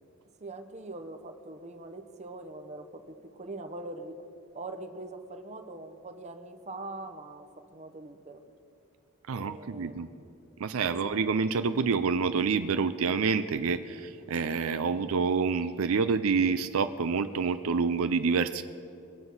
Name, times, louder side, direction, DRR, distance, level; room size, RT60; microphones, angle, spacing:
voice 1, 0.4-4.2 4.5-8.4 9.3-10.3 10.9-11.1, right 2 dB, 30° right, 6 dB, 0.9 m, -43 dB
voice 2, 9.3-10.1 10.6-18.6, right 5 dB, 75° right, 10 dB, 0.5 m, -27 dB
22.0 x 7.9 x 5.5 m, 2.7 s
head